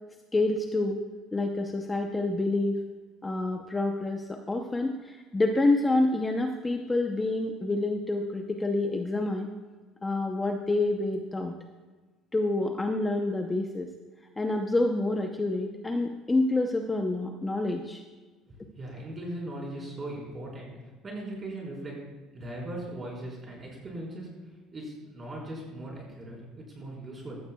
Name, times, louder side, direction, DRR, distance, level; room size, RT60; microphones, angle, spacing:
voice 1, 0.3-1.0 1.3-2.8 3.2-9.5 10.0-11.5 12.3-13.9 14.4-18.0, left 2 dB, 15° left, 3 dB, 0.7 m, -27 dB
voice 2, 18.5-20.7 21.0-22.0 22.3-27.4, right 1 dB, 25° right, -3 dB, 4.3 m, -39 dB
15.0 x 14.0 x 2.3 m, 1.3 s
cardioid pair, 140°, 0 cm